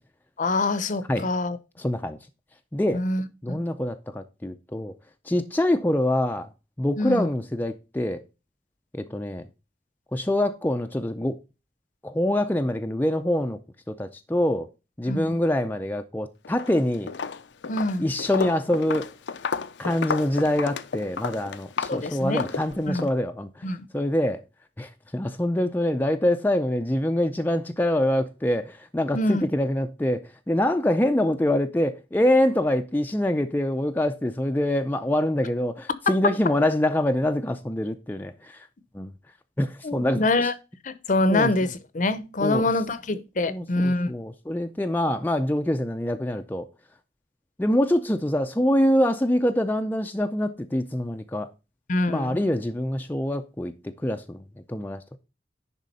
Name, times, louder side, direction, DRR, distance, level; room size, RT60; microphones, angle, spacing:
voice 1, 0.4-1.6 2.9-3.6 7.0-7.3 15.0-15.3 17.7-18.1 21.9-22.5 22.9-23.1 23.6-23.9 29.1-29.4 39.8-40.5 40.8-44.1 51.9-52.4, left 2 dB, 45° left, 0.7 m, -25 dB
voice 2, 1.8-2.2 2.7-3.1 3.4-4.9 5.3-6.5 6.8-8.2 8.9-9.5 10.1-11.4 12.0-13.6 13.9-14.7 15.0-17.1 18.0-19.1 19.8-23.6 23.9-24.4 24.8-38.7 38.9-39.1 39.6-40.2 41.3-41.5 42.4-42.6 43.5-46.6 47.6-51.5 52.1-55.2, left 1 dB, 10° left, 0.4 m, -25 dB
Walk footsteps, 16.4-16.8 17.1-23.1, left 5 dB, 80° left, 0.6 m, -32 dB
10.5 x 3.7 x 5.3 m
head